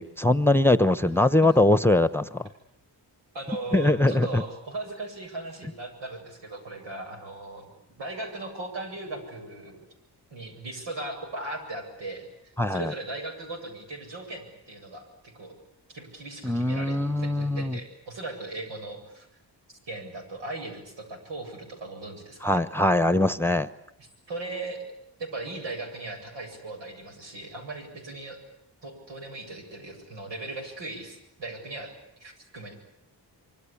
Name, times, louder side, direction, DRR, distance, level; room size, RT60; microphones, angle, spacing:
voice 1, 0.0-2.5 3.7-4.4 12.6-12.9 16.4-17.8 22.4-23.7, left 1 dB, 5° left, 13 dB, 1.0 m, -22 dB
voice 2, 3.3-7.7 8.0-9.9 10.3-15.5 15.9-19.3 19.9-22.6 24.0-24.9 25.2-28.4 28.8-31.9 32.2-32.7, right 2 dB, 90° right, 3 dB, 8.0 m, -38 dB
26.0 x 24.5 x 8.6 m, 0.79 s
wide cardioid pair, 95°, 42 cm